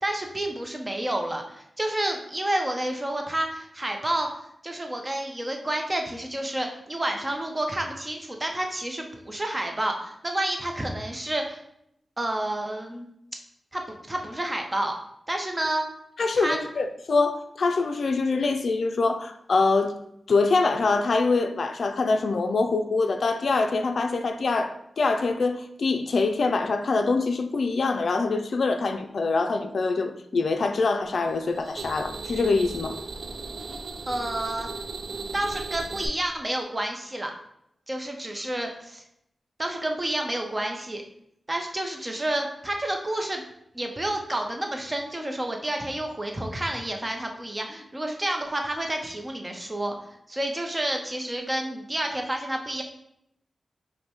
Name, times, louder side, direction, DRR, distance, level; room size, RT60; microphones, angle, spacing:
voice 1, 0.0-11.6 12.2-13.1 13.7-13.8 14.1-14.9 15.3-15.9 16.3-16.7 34.1-34.7 35.0-37.3 37.9-39.0 39.6-41.0 41.5-43.4 43.7-49.9 50.3-52.8, right 1 dB, 25° right, 0.7 m, -29 dB
voice 2, 16.2-19.9 20.3-33.0, left 3 dB, 70° left, 0.3 m, -24 dB
sound 1, 31.2-36.1, right 3 dB, 70° right, 0.4 m, -37 dB
5.2 x 2.1 x 3.0 m
cardioid pair, 60°, 0 cm